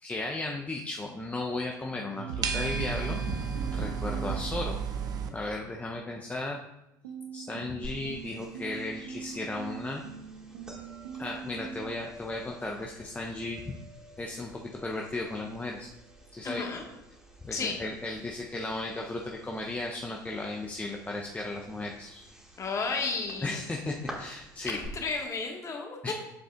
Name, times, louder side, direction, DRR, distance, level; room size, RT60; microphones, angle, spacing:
voice 1, 0.0-4.8 5.3-6.6 7.3-10.0 11.2-13.8 14.2-15.9 16.3-16.7 17.4-22.3 23.4-24.8 26.0-26.1, left 2 dB, 15° left, 0 dB, 0.8 m, -35 dB
sound 1, 2.2-5.3 7.0-11.9, right 7 dB, 60° right, 0.8 m, -40 dB
sound 2, 2.4-5.3, right 6 dB, 35° right, 0.9 m, -32 dB
sound 3, 7.8-24.9, equal, 5° right, 2.3 m, -50 dB
voice 2, 16.4-16.8 17.5-17.8 22.6-23.6 24.7-26.1, left 4 dB, 30° left, 2 dB, 1.7 m, -33 dB
9.5 x 7.5 x 2.5 m, 0.89 s
figure-of-eight pair, 65°, 11 cm